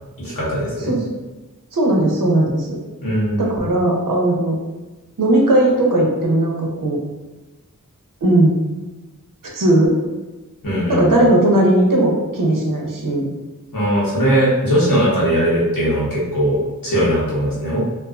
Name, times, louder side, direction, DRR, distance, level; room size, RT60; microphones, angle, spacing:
voice 1, 0.2-0.9 3.0-3.6 10.6-11.2 13.7-17.8, equal, 85° left, -7 dB, 1.0 m, -19 dB
voice 2, 1.7-2.8 3.4-4.5 5.2-7.0 8.2-8.6 9.5-10.0 10.9-13.3, right 1 dB, 80° right, -2 dB, 0.6 m, -17 dB
2.3 x 2.3 x 2.3 m, 1.2 s
wide cardioid pair, 70°, 33 cm